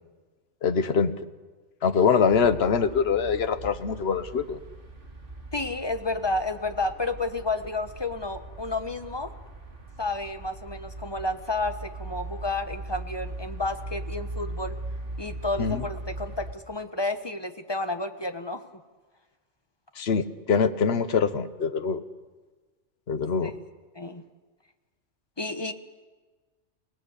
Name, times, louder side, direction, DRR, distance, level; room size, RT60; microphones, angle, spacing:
voice 1, 0.6-1.2 1.8-4.6 15.6-15.8 20.0-22.0 23.1-23.5, left 6 dB, 60° left, 11 dB, 1.3 m, -24 dB
sound 1, 2.3-16.5, right 2 dB, 50° right, 2.7 m, -40 dB
voice 2, 5.5-9.3 10.0-14.7 15.2-18.6 23.4-23.6 23.9-24.2 25.4-25.7, left 2 dB, 20° left, 8 dB, 1.3 m, -31 dB
29.0 x 19.0 x 8.3 m, 1.4 s
omnidirectional pair, 1.2 m